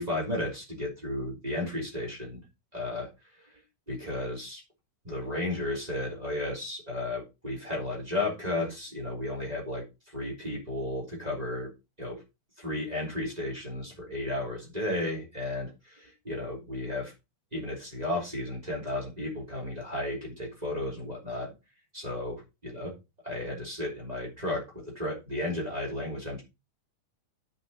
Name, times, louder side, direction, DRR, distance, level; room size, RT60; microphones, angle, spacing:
voice 1, 0.0-2.4 2.7-3.1 3.9-4.6 5.0-9.9 10.1-11.7 12.0-12.2 12.6-17.1 17.5-21.5 21.9-22.9 23.2-26.4, left 1 dB, 10° right, -2 dB, 3.3 m, -33 dB
8.6 x 7.0 x 4.3 m, 0.26 s
omnidirectional pair, 3.5 m